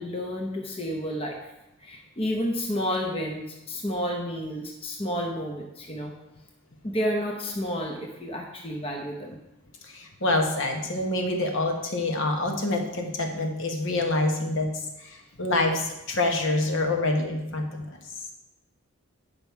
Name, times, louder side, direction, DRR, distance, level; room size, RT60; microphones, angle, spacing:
voice 1, 0.0-1.5 1.8-6.1 6.8-9.4, equal, 25° left, 0 dB, 0.8 m, -30 dB
voice 2, 9.9-14.7 15.0-18.0, left 2 dB, 60° left, 3 dB, 1.1 m, -26 dB
9.0 x 5.4 x 4.6 m, 0.92 s
head